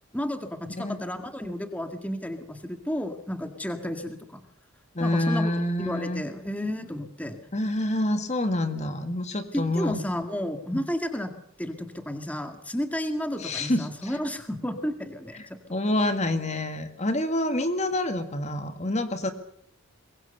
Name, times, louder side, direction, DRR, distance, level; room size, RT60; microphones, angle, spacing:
voice 1, 0.1-4.4 5.0-5.5 5.8-7.4 9.5-11.3 11.6-15.6, equal, 5° left, 7 dB, 1.9 m, -32 dB
voice 2, 5.0-6.2 7.5-10.0 10.7-10.8 13.4-14.2 15.4-19.3, left 1 dB, 35° left, 8 dB, 1.9 m, -27 dB
24.5 x 22.0 x 6.8 m, 0.65 s
head